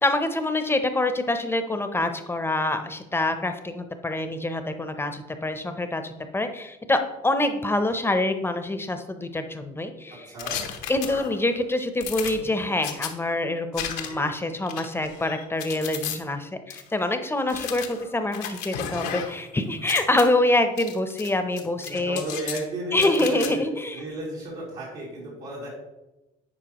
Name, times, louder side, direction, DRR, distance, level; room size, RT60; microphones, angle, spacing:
voice 1, 0.0-10.3 10.9-22.2 22.9-24.0, left 2 dB, 15° left, 8 dB, 0.7 m, -26 dB
voice 2, 10.3-10.6 18.9-19.1 21.8-23.6 23.9-25.7, right 1 dB, 70° right, -7 dB, 2.6 m, -33 dB
sound 1, 10.4-11.5 12.0-13.1 13.7-14.3 14.7-16.2 16.7-16.8 17.5-19.5 19.8-20.2 20.8-21.3 21.6-22.6 23.0-23.5, left 9 dB, 85° left, 0.9 m, -34 dB
10.5 x 4.4 x 3.0 m, 0.97 s
supercardioid pair, 85°, 17 cm